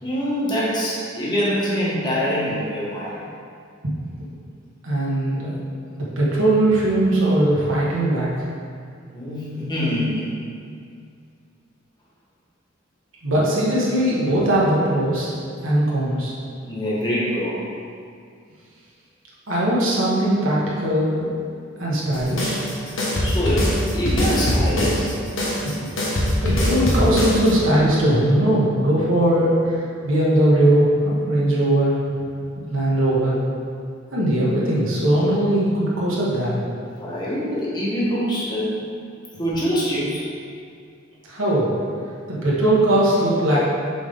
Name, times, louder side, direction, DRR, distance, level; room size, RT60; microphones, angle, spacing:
voice 1, 0.0-3.2 9.1-10.3 16.6-17.6 23.2-25.1 35.3-35.4 37.0-38.8 39.4-40.2, equal, 20° left, -8 dB, 1.6 m, -24 dB
voice 2, 4.8-5.6 6.0-8.3 13.2-15.3 15.6-16.3 19.5-21.3 21.8-22.9 25.6-25.8 26.4-32.0 32.7-33.4 34.1-36.7 41.3-41.7 42.3-43.6, right 1 dB, 80° right, -7 dB, 1.6 m, -20 dB
sound 1, 22.1-27.5, left 1 dB, 70° left, 1.4 m, -22 dB
5.9 x 5.3 x 3.8 m, 2.3 s
head